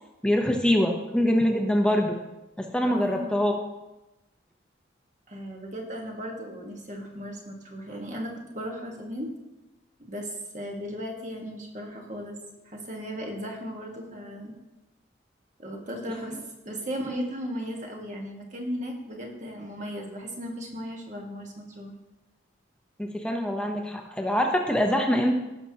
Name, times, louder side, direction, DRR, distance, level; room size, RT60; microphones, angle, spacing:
voice 1, 0.2-2.2 2.6-3.6 23.0-25.4, left 1 dB, 5° left, 2 dB, 0.8 m, -24 dB
voice 2, 2.8-3.5 5.3-9.3 10.1-12.4 12.6-14.5 15.6-16.4 16.6-21.9, equal, 40° right, 0 dB, 1.5 m, -36 dB
17.0 x 6.0 x 2.9 m, 1.0 s
head